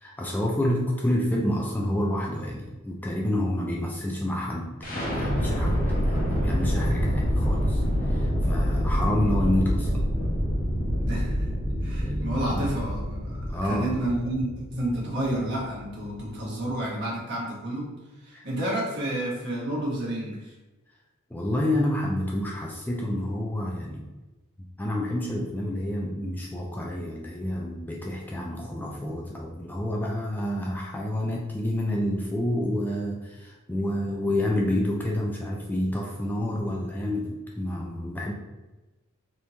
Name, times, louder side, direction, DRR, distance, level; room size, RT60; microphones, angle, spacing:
voice 1, 0.0-9.9 12.0-12.7 13.5-14.0 18.3-18.5 21.3-24.1 24.8-38.3, left 1 dB, 10° left, -2 dB, 0.3 m, -29 dB
sound 1, 4.8-16.7, equal, 40° left, 0.9 m, -27 dB
voice 2, 11.0-11.5 11.8-17.9 18.2-20.5, right 1 dB, 55° right, -4 dB, 1.2 m, -30 dB
3.4 x 2.9 x 2.8 m, 1.1 s
head